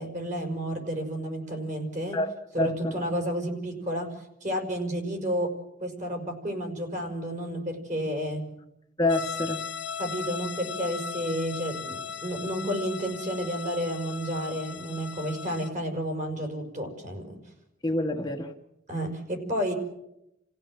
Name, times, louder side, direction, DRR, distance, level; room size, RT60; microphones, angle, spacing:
voice 1, 0.0-2.2 2.5-4.1 4.4-5.5 5.8-8.4 10.0-17.4 18.9-19.7, equal, 40° right, 5.4 m, -31 dB
voice 2, 2.1-2.9 9.0-9.7 17.8-18.5, left 2 dB, 20° left, 1.4 m, -27 dB
sound 1, 9.1-15.7, left 6 dB, 60° left, 1.5 m, -37 dB
29.5 x 16.0 x 7.6 m
head